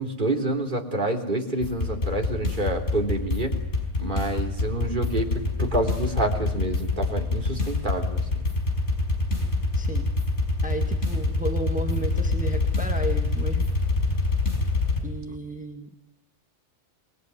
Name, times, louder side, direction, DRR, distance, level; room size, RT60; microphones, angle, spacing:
voice 1, 0.0-3.6 4.0-8.4, right 2 dB, 40° right, 2 dB, 3.6 m, -28 dB
sound 1, 1.6-15.0, left 3 dB, 70° left, 5.6 m, -26 dB
voice 2, 9.7-10.1 10.6-13.7 15.0-15.9, right 2 dB, 5° right, 4 dB, 1.8 m, -33 dB
27.0 x 21.5 x 9.7 m, 0.81 s
omnidirectional pair, 1.2 m